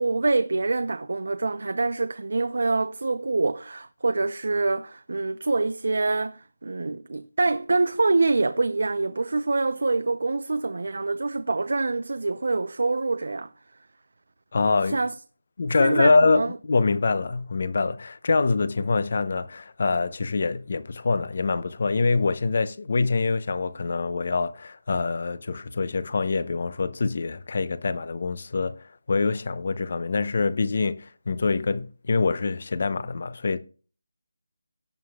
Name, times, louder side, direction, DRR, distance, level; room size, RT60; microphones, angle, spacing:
voice 1, 0.0-13.5 14.9-15.1 15.8-16.5, right 3 dB, 65° right, 0.6 m, -25 dB
voice 2, 14.5-15.0 15.6-33.6, left 4 dB, 40° left, 0.7 m, -25 dB
17.5 x 7.7 x 2.3 m
figure-of-eight pair, 175°, 0 cm